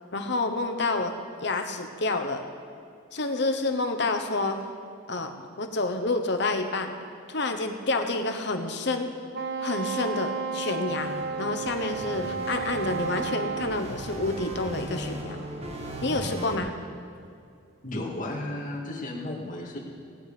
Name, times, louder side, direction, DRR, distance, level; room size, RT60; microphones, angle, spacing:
voice 1, 0.1-1.1 1.4-2.4 3.1-4.6 5.1-6.9 7.3-9.1 9.6-11.1 11.4-15.4 16.0-16.7, left 2 dB, 60° left, 6 dB, 1.0 m, -28 dB
Wind instrument woodwind instrument, 9.3-13.8, right 5 dB, 55° right, 0.5 m, -32 dB
sound 1, 10.9-16.6, right 1 dB, 30° right, 1.3 m, -37 dB
voice 2, 17.8-19.8, left 1 dB, 40° left, -3 dB, 2.4 m, -34 dB
18.5 x 9.4 x 5.1 m, 2.4 s
head